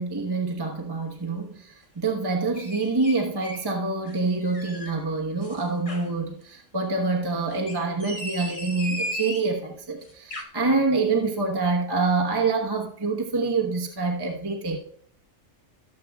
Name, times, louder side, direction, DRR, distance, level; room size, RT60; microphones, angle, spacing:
voice 1, 0.0-14.8, right 3 dB, 20° right, 0 dB, 1.1 m, -26 dB
sound 1, 2.6-3.7 4.1-5.0 5.4-6.1 7.5-9.5 10.1-10.4, equal, 30° left, 1.0 m, -36 dB
18.5 x 7.6 x 2.4 m, 0.63 s
omnidirectional pair, 1.3 m